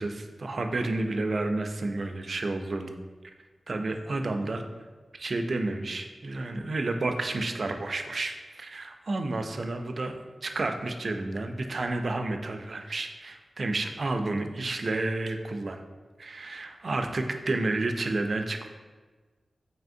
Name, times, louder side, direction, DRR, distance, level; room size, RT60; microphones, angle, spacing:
voice 1, 0.0-2.9 3.7-4.6 5.1-10.1 10.4-15.8 16.2-18.7, right 2 dB, 50° right, 6 dB, 0.3 m, -30 dB
4.1 x 3.4 x 2.5 m, 1.4 s
wide cardioid pair, 120°, 0 cm